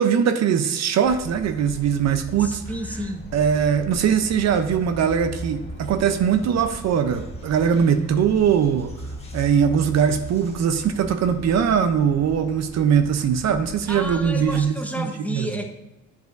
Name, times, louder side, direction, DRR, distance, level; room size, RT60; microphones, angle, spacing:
voice 1, 0.0-2.6 3.3-8.9 9.3-15.5, right 7 dB, 60° right, 8 dB, 0.5 m, -21 dB
sound 1, 1.0-14.7, equal, 20° left, 1.2 m, -38 dB
voice 2, 2.4-3.3 13.9-15.7, equal, 5° left, 3 dB, 0.8 m, -31 dB
8.0 x 4.9 x 2.5 m, 1.0 s
cardioid pair, 90°, 30 cm